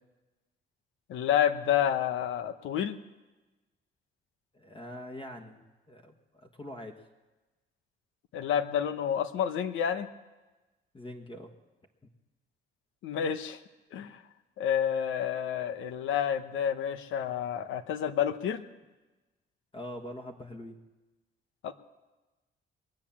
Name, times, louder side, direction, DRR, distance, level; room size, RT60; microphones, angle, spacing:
voice 1, 1.1-3.0 8.3-10.1 13.0-13.6 13.9-14.2 14.6-18.6 21.6-21.7, left 9 dB, 80° left, 11 dB, 0.9 m, -29 dB
voice 2, 4.5-5.6 5.9-7.0 10.9-11.5 19.7-20.8, left 1 dB, 25° left, 3 dB, 1.6 m, -43 dB
21.5 x 8.9 x 7.3 m, 1.2 s
cardioid pair, 90°, 20 cm